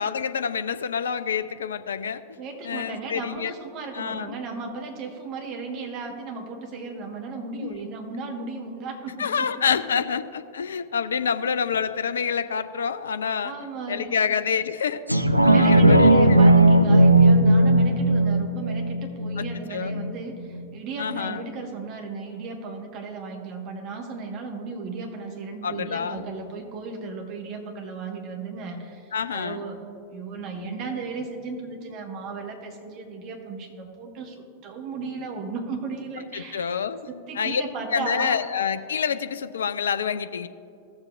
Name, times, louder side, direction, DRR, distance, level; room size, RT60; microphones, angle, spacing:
voice 1, 0.0-2.2 2.6-3.5 3.9-4.3 7.6-7.8 9.2-13.5 13.9-16.4 19.4-20.0 21.0-21.4 25.6-26.2 29.1-29.6 36.3-37.0 37.4-37.6 37.9-40.5, left 7 dB, 65° left, 12 dB, 0.4 m, -27 dB
voice 2, 2.4-9.5 13.4-14.3 15.5-29.8 30.1-36.7 37.1-38.4, right 4 dB, 40° right, 2 dB, 1.5 m, -35 dB
sound 1, 15.1-20.1 20.6-20.7, right 1 dB, 85° right, 0.4 m, -17 dB
15.5 x 7.2 x 2.5 m, 2.5 s
figure-of-eight pair, 90°, 0 cm